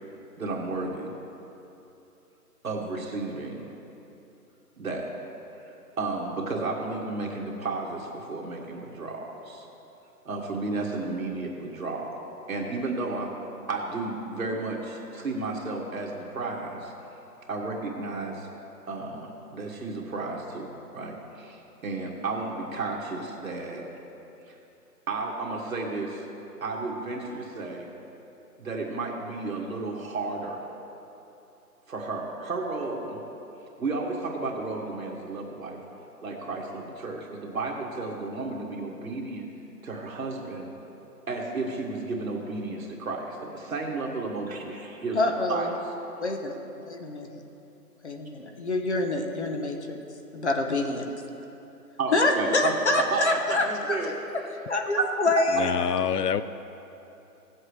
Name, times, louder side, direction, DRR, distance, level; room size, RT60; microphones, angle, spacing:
voice 1, 0.4-1.1 2.6-3.6 4.8-5.1 5.6-9.7 10.3-12.1 12.5-13.4 13.7-16.9 17.5-18.5 18.9-23.8 24.5-24.6 25.1-26.3 26.6-27.9 28.6-30.6 31.9-33.2 33.8-35.8 36.2-39.5 39.8-40.7 41.3-45.2 45.5-45.7 52.0-54.1 54.4-54.6 54.9-55.1 55.3-55.4, right 3 dB, 60° right, -1 dB, 2.0 m, -32 dB
voice 2, 45.1-45.7 46.2-46.5 46.9-47.4 48.0-50.0 50.3-51.1 52.1-53.6 54.7-55.7, left 2 dB, 45° left, 4 dB, 1.0 m, -26 dB
voice 3, 55.5-56.4, left 7 dB, 80° left, 14 dB, 0.6 m, -26 dB
17.0 x 7.7 x 3.3 m, 2.9 s
hypercardioid pair, 170°, 47 cm